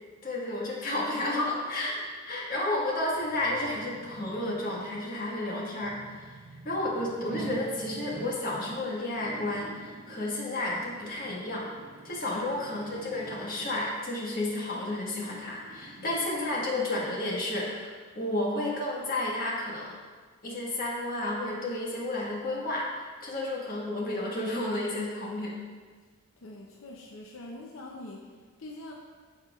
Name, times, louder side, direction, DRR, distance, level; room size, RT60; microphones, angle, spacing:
voice 1, 0.2-2.0 2.3-6.4 6.6-11.7 12.0-20.0 20.4-25.5, left 1 dB, 45° left, -4 dB, 1.5 m, -32 dB
sound 1, 2.8-16.7 17.1-17.2, right 3 dB, 35° right, 0.4 m, -47 dB
voice 2, 26.4-28.9, left 1 dB, 85° left, 0 dB, 0.7 m, -44 dB
13.0 x 4.4 x 2.4 m, 1.5 s
head